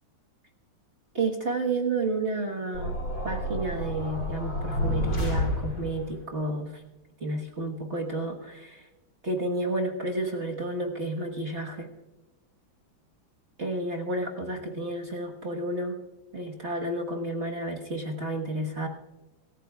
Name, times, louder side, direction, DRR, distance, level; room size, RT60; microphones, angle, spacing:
voice 1, 1.1-2.9 3.2-6.7 7.2-8.8 9.2-11.9 13.6-16.0 16.3-18.9, right 2 dB, 40° right, 0 dB, 1.5 m, -31 dB
sound 1, 2.7-6.1, left 1 dB, 75° left, 6.9 m, -30 dB
25.0 x 14.0 x 2.3 m, 1.1 s
omnidirectional pair, 2.1 m